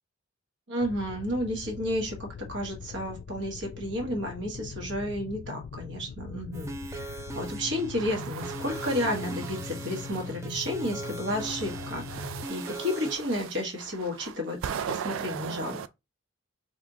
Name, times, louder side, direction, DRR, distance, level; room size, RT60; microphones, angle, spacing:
voice 1, 0.7-2.1 2.5-15.8, equal, 60° right, 1.5 m, -32 dB
sound 1, 0.8-12.5, left 6 dB, 70° left, 0.3 m, -42 dB
sound 2, 6.5-13.2, right 2 dB, 15° right, 0.4 m, -40 dB
sound 3, 7.8-10.4 11.0-15.9, right 8 dB, 80° right, 0.3 m, -39 dB
4.1 x 3.5 x 2.8 m
head